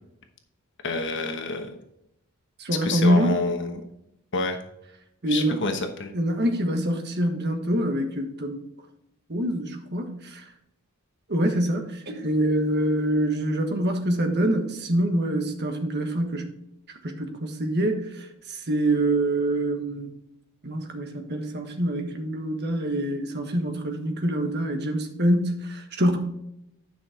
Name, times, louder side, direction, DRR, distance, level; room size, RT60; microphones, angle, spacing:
voice 1, 0.8-1.7 2.8-3.8 4.3-4.6 5.3-6.1, left 3 dB, 60° left, 5 dB, 1.1 m, -28 dB
voice 2, 2.6-3.3 5.2-5.6 6.1-8.7 9.3-10.4 11.3-16.5 17.0-20.1 20.6-26.2, right 1 dB, 50° right, 5 dB, 1.5 m, -25 dB
10.5 x 5.9 x 3.7 m, 0.80 s
head